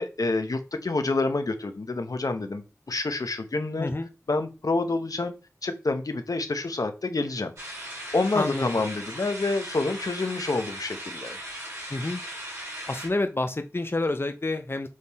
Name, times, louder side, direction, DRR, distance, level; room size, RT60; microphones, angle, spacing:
voice 1, 0.0-3.9 4.3-5.3 5.6-7.5 8.1-11.4, left 3 dB, 75° left, 0.9 m, -28 dB
voice 2, 3.8-4.1 8.3-8.7 11.9-12.2 12.9-14.9, left 2 dB, 40° left, 0.7 m, -28 dB
sound 1, 7.6-13.1, equal, 50° right, 3.9 m, -38 dB
6.4 x 3.6 x 4.2 m
wide cardioid pair, 45°, 6 cm